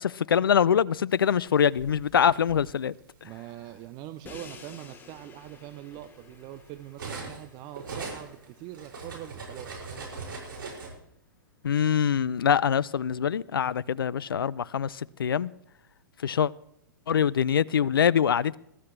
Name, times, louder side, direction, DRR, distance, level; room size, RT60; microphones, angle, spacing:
voice 1, 0.0-2.9 11.6-15.5 16.2-16.5 17.1-18.6, left 8 dB, 80° left, 0.4 m, -24 dB
Cutlery silverware, 1.4-2.6 3.6-3.8 4.2-7.5 7.7-10.9, right 4 dB, 70° right, 5.9 m, -41 dB
voice 2, 3.2-10.1, right 14 dB, 35° right, 0.7 m, -43 dB
Crash cymbal, 4.3-10.2, left 6 dB, 15° left, 1.2 m, -52 dB
20.5 x 13.5 x 3.3 m
hypercardioid pair, 115°, 12 cm